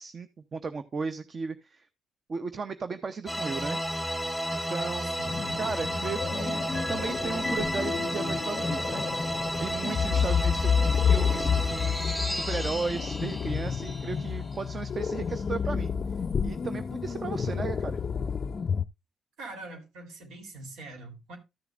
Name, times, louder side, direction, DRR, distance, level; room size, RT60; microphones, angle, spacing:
voice 1, 0.0-1.9 2.3-3.8 4.5-5.2 5.6-6.6 6.9-9.1 9.5-11.9 12.3-15.9 16.4-18.0, right 5 dB, 40° right, 0.7 m, -35 dB
sound 1, 3.3-14.7, equal, ahead, 1.7 m, -32 dB
voice 2, 5.0-5.7 10.2-10.5 19.4-21.4, right 2 dB, 85° right, 3.3 m, -44 dB
sound 2, 5.2-18.8, left 6 dB, 45° left, 0.4 m, -30 dB
14.0 x 6.9 x 2.4 m
cardioid pair, 90°, 0 cm